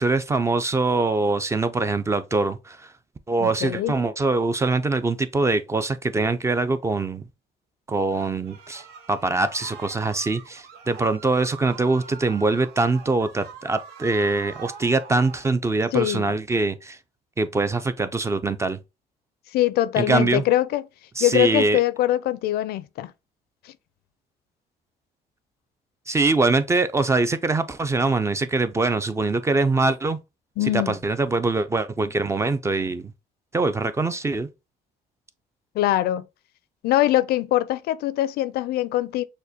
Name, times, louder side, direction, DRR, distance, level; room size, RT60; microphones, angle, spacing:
voice 1, 0.0-2.9 3.3-7.2 7.9-8.8 9.1-17.0 17.4-18.8 20.0-20.4 21.2-21.8 26.1-30.2 30.7-33.1 33.5-34.5, right 3 dB, 15° right, 0.3 m, -23 dB
voice 2, 3.4-3.9 15.9-16.3 19.5-20.8 21.2-23.1 30.6-31.0 35.8-36.3 36.8-39.2, left 14 dB, 70° left, 0.4 m, -22 dB
sound 1, 8.1-15.5, right 7 dB, 80° right, 0.8 m, -43 dB
6.3 x 2.2 x 2.7 m
cardioid pair, 110°, 17 cm